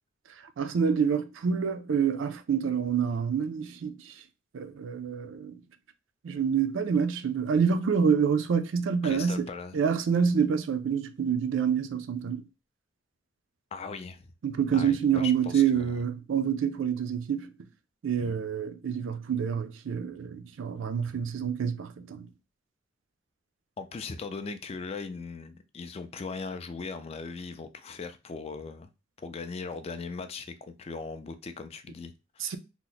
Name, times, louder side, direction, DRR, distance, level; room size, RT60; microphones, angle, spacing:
voice 1, 0.6-4.2 4.5-5.6 6.2-9.5 9.7-12.4 14.4-17.5 18.0-22.3 32.4-32.6, right 7 dB, 70° right, 0.4 m, -27 dB
voice 2, 9.0-9.8 13.7-14.3 14.7-16.0 23.8-28.9 29.2-32.6, left 4 dB, 30° left, 0.3 m, -39 dB
2.9 x 2.0 x 3.9 m
head